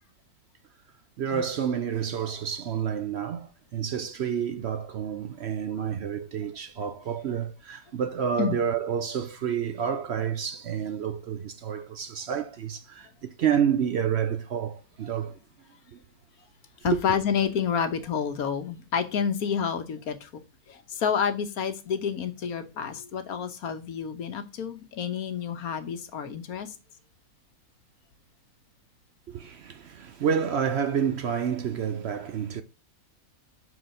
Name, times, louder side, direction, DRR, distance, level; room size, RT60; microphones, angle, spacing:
voice 1, 1.2-15.4 15.9-16.0 16.8-17.0 29.3-32.6, right 8 dB, 60° right, 0.7 m, -29 dB
voice 2, 16.8-20.4 20.7-26.7, left 7 dB, 85° left, 1.5 m, -29 dB
5.8 x 4.8 x 6.4 m
omnidirectional pair, 1.5 m